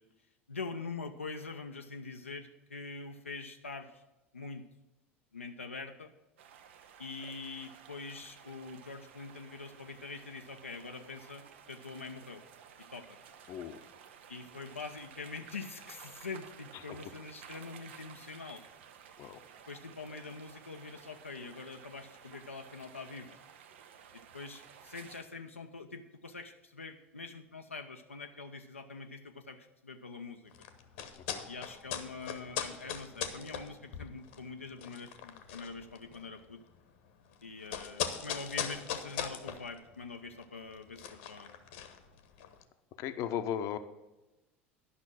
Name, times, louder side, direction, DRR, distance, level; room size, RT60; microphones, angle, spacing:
voice 1, 0.5-4.0 4.3-4.7 5.3-6.1 7.0-12.4 12.9-13.1 14.3-18.6 19.7-23.4 24.3-30.5 31.5-36.6 37.4-41.5, left 4 dB, 85° left, 4 dB, 0.5 m, -44 dB
sound 1, 6.4-25.2, right 8 dB, 65° right, 0.7 m, -54 dB
voice 2, 13.5-13.8 19.2-19.4 31.3-31.4 43.0-43.8, left 9 dB, 50° left, 10 dB, 0.7 m, -36 dB
sound 2, 30.5-42.6, left 8 dB, 65° left, 1.0 m, -41 dB
11.0 x 6.0 x 6.1 m, 1.0 s
figure-of-eight pair, 75°, 7 cm